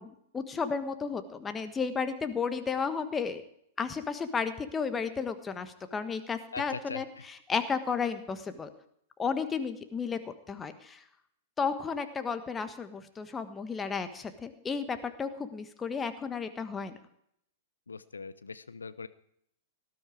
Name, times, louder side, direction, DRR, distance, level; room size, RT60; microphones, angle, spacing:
voice 1, 0.0-3.4 3.8-8.7 9.2-11.0 11.6-17.0, left 5 dB, 15° left, 9 dB, 1.4 m, -33 dB
voice 2, 6.5-7.2 17.9-19.1, left 4 dB, 75° left, 14 dB, 0.8 m, -41 dB
18.5 x 12.5 x 5.0 m, 0.72 s
figure-of-eight pair, 100°, 0 cm